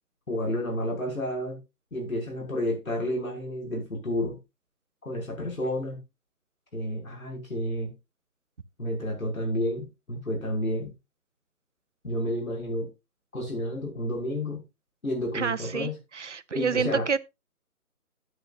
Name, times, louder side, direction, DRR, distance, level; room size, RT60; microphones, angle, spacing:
voice 1, 0.3-1.6 1.9-4.4 5.0-6.0 6.7-7.9 8.8-10.9 12.0-12.9 13.3-14.6 15.0-16.0 16.5-17.1, left 1 dB, 60° left, 6.3 m, -30 dB
voice 2, 15.3-17.2, right 5 dB, 50° right, 0.7 m, -28 dB
12.0 x 9.2 x 2.6 m
figure-of-eight pair, 155°, 45 cm